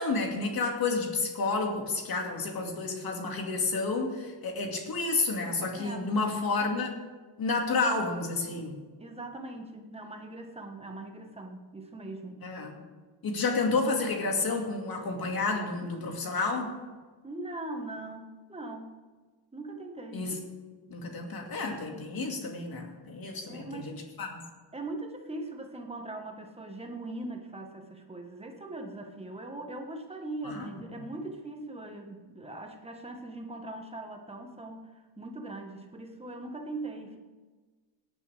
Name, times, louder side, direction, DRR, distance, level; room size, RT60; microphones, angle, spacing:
voice 1, 0.0-6.9 7.4-8.8 12.4-12.7 13.2-16.7 20.1-20.4 20.9-24.4 30.4-30.7 30.9-31.0, left 3 dB, 50° left, 1 dB, 2.4 m, -30 dB
voice 2, 5.7-6.2 9.0-12.5 17.2-18.9 19.5-20.3 23.5-24.0 24.7-37.2, right 2 dB, 15° right, 3 dB, 1.4 m, -40 dB
17.5 x 10.0 x 3.5 m, 1.4 s
wide cardioid pair, 160°, 44 cm